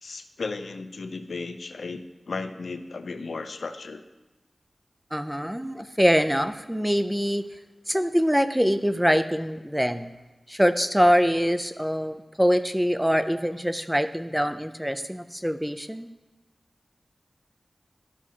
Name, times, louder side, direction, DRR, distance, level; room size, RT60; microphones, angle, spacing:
voice 1, 0.0-4.0, left 3 dB, 75° left, 8 dB, 0.6 m, -35 dB
voice 2, 5.1-7.4 7.9-10.1 10.5-16.1, equal, 5° right, 10 dB, 0.5 m, -24 dB
13.0 x 5.9 x 2.8 m, 1.1 s
wide cardioid pair, 85°, 0 cm